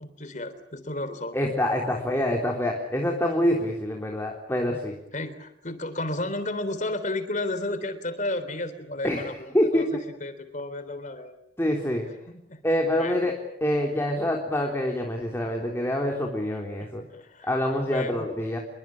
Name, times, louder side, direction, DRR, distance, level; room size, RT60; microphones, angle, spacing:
voice 1, 0.0-1.4 3.4-3.5 5.1-11.3 12.3-13.2 16.8-17.5 17.9-18.3, left 2 dB, 45° left, 12 dB, 3.5 m, -33 dB
voice 2, 1.3-5.0 9.0-10.0 11.6-12.1 12.6-17.1 17.4-18.6, left 1 dB, 15° left, 1 dB, 3.6 m, -26 dB
28.0 x 23.0 x 8.8 m, 0.80 s
head